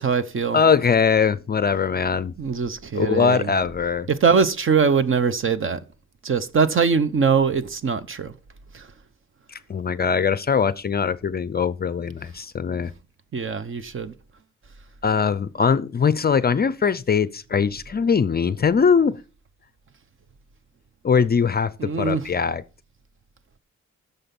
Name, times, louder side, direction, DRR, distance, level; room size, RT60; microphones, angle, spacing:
voice 1, 0.0-0.6 2.4-3.5 4.1-5.8 6.2-8.3 13.3-14.1 21.8-22.2, right 5 dB, 45° right, 0.9 m, -22 dB
voice 2, 0.5-2.3 2.9-4.1 9.5-12.9 15.0-19.2 21.0-22.6, left 6 dB, 35° left, 0.5 m, -21 dB
9.9 x 7.0 x 5.3 m
wide cardioid pair, 135°, 30 cm